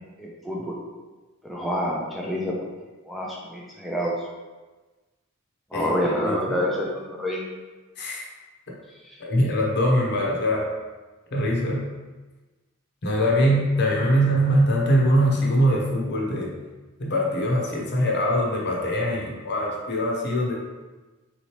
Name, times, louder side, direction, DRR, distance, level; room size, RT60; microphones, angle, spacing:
voice 1, 0.2-0.7 1.4-2.5 3.1-4.1 5.7-7.5, equal, ahead, -4 dB, 0.4 m, -27 dB
voice 2, 6.2-6.6 8.0-8.2 9.2-10.7 11.3-11.8 13.0-16.5 17.0-20.5, equal, 55° left, -1 dB, 0.8 m, -22 dB
3.8 x 3.1 x 2.9 m, 1.2 s
head